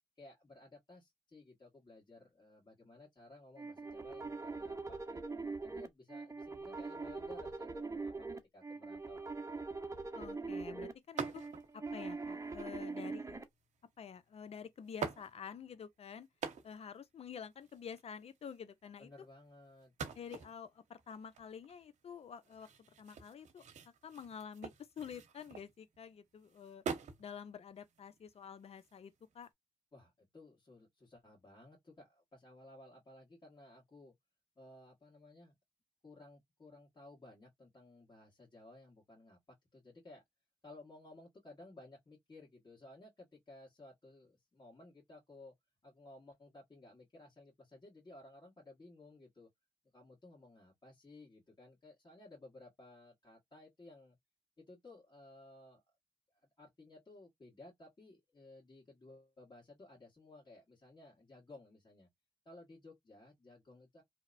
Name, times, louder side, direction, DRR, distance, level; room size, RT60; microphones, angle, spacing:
voice 1, 0.2-8.1 8.5-9.2 19.0-19.9 29.9-34.1 34.6-35.5 36.0-40.2 40.6-45.5 45.8-49.5 49.9-54.2 54.6-55.8 56.3-62.1 62.4-64.0, left 2 dB, 35° left, 1.5 m, -57 dB
sound 1, 3.6-13.4, right 3 dB, 25° right, 0.7 m, -42 dB
voice 2, 10.1-11.4 11.7-13.4 14.0-16.3 16.6-19.3 20.1-22.7 23.0-23.6 24.0-26.8 27.2-29.5, left 7 dB, 55° left, 0.5 m, -49 dB
sound 2, 11.2-11.8 12.6-13.1 14.2-14.3 14.8-15.8 16.2-17.0 17.3-17.4 17.5-18.6 19.8-26.0 26.4-27.3 27.7-29.5, right 6 dB, 70° right, 0.7 m, -45 dB
2.8 x 2.0 x 2.5 m
supercardioid pair, 45°, 13 cm